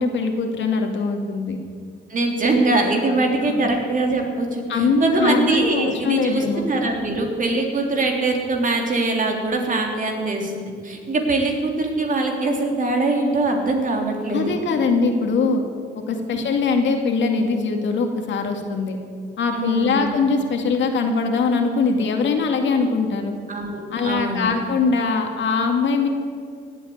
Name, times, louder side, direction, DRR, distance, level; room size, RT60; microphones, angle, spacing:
voice 1, 0.0-1.6 4.7-6.7 14.3-15.6 15.9-19.0 19.4-23.4 23.9-26.1, left 4 dB, 70° left, 4 dB, 2.2 m, -22 dB
voice 2, 2.1-14.5 16.3-16.4 19.5-20.2 23.5-24.5, right 2 dB, 40° right, 2 dB, 3.3 m, -22 dB
17.0 x 8.5 x 9.4 m, 2.1 s
cardioid pair, 90°, 20 cm